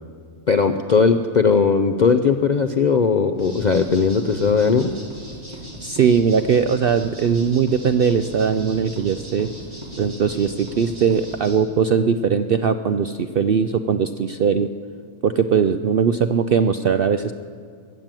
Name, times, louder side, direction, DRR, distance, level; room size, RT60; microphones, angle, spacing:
voice 1, 0.5-4.9, left 5 dB, 60° left, 7 dB, 0.4 m, -18 dB
sound 1, 3.4-11.5, right 1 dB, 20° right, 4.8 m, -38 dB
voice 2, 5.8-9.5 10.0-14.7 15.2-17.3, right 6 dB, 65° right, 9 dB, 0.5 m, -20 dB
20.5 x 7.5 x 8.9 m, 2.4 s
omnidirectional pair, 1.5 m